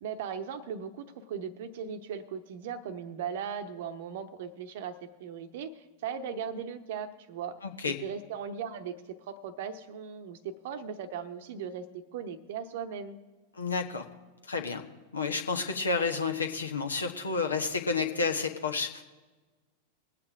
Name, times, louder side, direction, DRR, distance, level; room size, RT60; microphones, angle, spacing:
voice 1, 0.0-7.6 7.9-9.0 9.3-13.2, right 7 dB, 55° right, 11 dB, 0.9 m, -38 dB
voice 2, 7.6-8.0 13.6-14.0 14.5-14.8 15.1-19.0, left 4 dB, 75° left, 5 dB, 1.2 m, -30 dB
21.5 x 8.5 x 3.6 m, 1.3 s
figure-of-eight pair, 90°, 0 cm